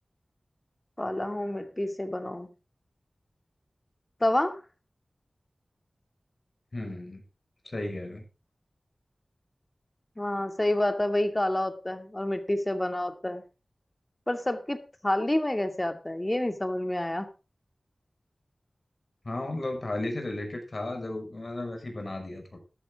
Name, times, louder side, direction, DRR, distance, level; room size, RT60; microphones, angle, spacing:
voice 1, 1.0-2.5 4.2-4.6 10.2-13.4 14.3-17.3, left 1 dB, 25° left, 7 dB, 2.4 m, -28 dB
voice 2, 6.7-7.2 7.6-8.2 19.2-22.6, left 2 dB, 55° left, 4 dB, 5.7 m, -34 dB
14.0 x 12.0 x 3.7 m, 0.32 s
wide cardioid pair, 55°, 0 cm